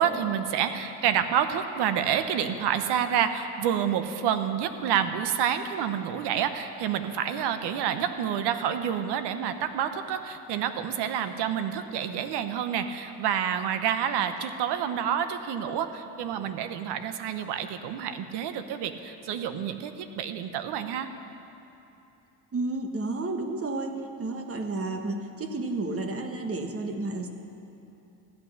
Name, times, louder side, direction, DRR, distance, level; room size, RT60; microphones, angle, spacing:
voice 1, 0.0-21.1, right 9 dB, 70° right, 9 dB, 0.9 m, -28 dB
voice 2, 22.5-27.3, right 2 dB, 35° right, 5 dB, 1.3 m, -31 dB
13.5 x 8.6 x 6.5 m, 2.9 s
supercardioid pair, 85°, 42 cm